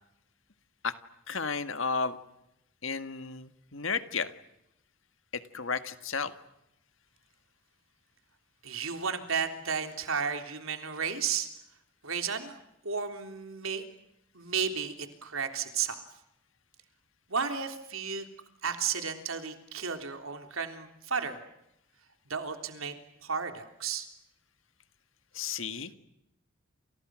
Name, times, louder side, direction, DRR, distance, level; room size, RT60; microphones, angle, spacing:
voice 1, 1.3-2.2 2.8-4.3 5.3-6.3 25.3-25.9, left 5 dB, 65° left, 10 dB, 1.8 m, -33 dB
voice 2, 8.6-11.5 12.0-12.6 12.8-13.8 14.3-14.9 15.2-16.0 17.3-18.3 18.6-21.4 22.3-22.9 23.2-24.1, right 6 dB, 70° right, 6 dB, 3.6 m, -33 dB
29.5 x 29.5 x 6.4 m, 0.83 s
head